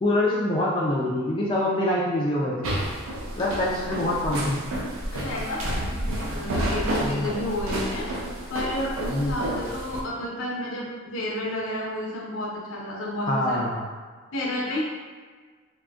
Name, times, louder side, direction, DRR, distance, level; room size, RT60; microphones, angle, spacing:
voice 1, 0.0-2.7 3.4-4.6 7.0-7.3 9.1-9.4 9.6-9.7 13.3-13.9, left 1 dB, 25° left, -5 dB, 0.4 m, -25 dB
sound 1, 2.6-10.0, right 1 dB, 70° right, 0.5 m, -30 dB
voice 2, 5.1-8.1 8.5-13.6 14.3-14.8, left 1 dB, 70° left, -4 dB, 0.7 m, -31 dB
3.6 x 2.6 x 2.3 m, 1.5 s
head